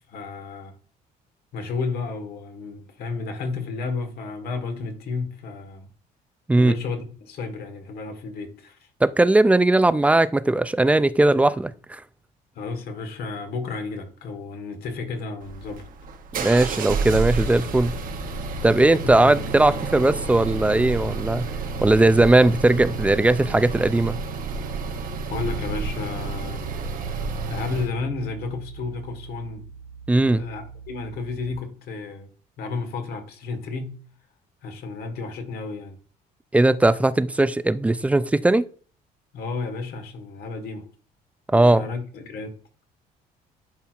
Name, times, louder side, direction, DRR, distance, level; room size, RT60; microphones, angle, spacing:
voice 1, 0.1-0.7 1.5-5.9 6.6-8.9 12.5-15.9 19.0-19.4 25.3-26.7 27.5-29.7 30.2-32.3 32.6-34.0 34.6-36.0 39.3-40.9 41.5-42.5, left 4 dB, 70° left, 1.5 m, -32 dB
voice 2, 9.0-12.0 16.4-18.0 18.6-21.5 21.8-24.2 30.1-30.5 36.5-38.6 41.5-41.8, right 2 dB, 10° right, 0.3 m, -18 dB
sound 1, 15.4-27.9, right 4 dB, 55° right, 1.0 m, -30 dB
Bass guitar, 25.3-31.5, right 5 dB, 40° right, 1.5 m, -39 dB
10.5 x 4.4 x 2.5 m
cardioid pair, 110°, 17 cm